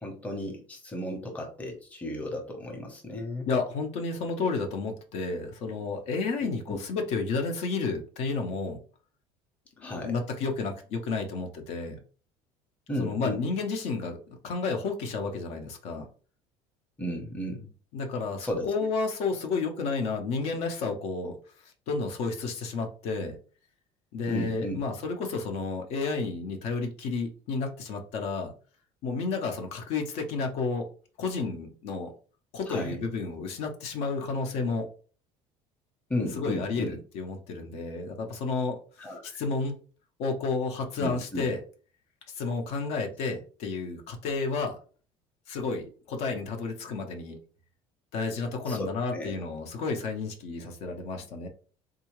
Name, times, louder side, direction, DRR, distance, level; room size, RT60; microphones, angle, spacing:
voice 1, 0.0-3.5 6.4-6.8 9.8-10.1 12.9-13.4 17.0-17.7 18.4-18.7 24.3-24.8 32.7-33.0 36.1-36.9 39.0-39.4 41.0-41.5 48.7-49.3, left 1 dB, 10° left, 1 dB, 0.8 m, -34 dB
voice 2, 3.4-8.8 9.8-12.0 13.0-16.1 17.9-21.4 21.9-23.4 24.1-28.5 29.0-30.9 31.2-32.1 32.5-34.9 36.4-38.8 39.2-39.8 40.2-41.6 42.3-44.8 45.5-47.4 48.1-51.5, left 4 dB, 70° left, 4 dB, 0.8 m, -31 dB
3.6 x 2.7 x 3.1 m, 0.39 s
cardioid pair, 145°, 12 cm